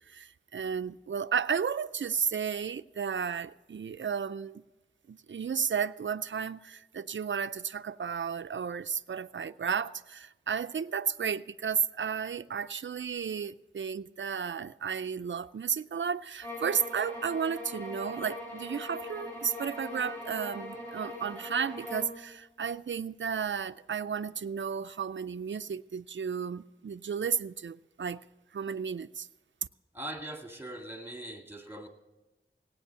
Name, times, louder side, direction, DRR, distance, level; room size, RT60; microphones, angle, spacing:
voice 1, 0.1-4.6 5.1-28.2 28.5-29.3, right 7 dB, 65° right, 0.4 m, -33 dB
sound 1, 16.4-22.2, left 2 dB, 10° left, 7.2 m, -41 dB
voice 2, 29.9-31.9, right 1 dB, 10° right, 2.0 m, -41 dB
18.0 x 9.2 x 6.8 m
wide cardioid pair, 50°, 21 cm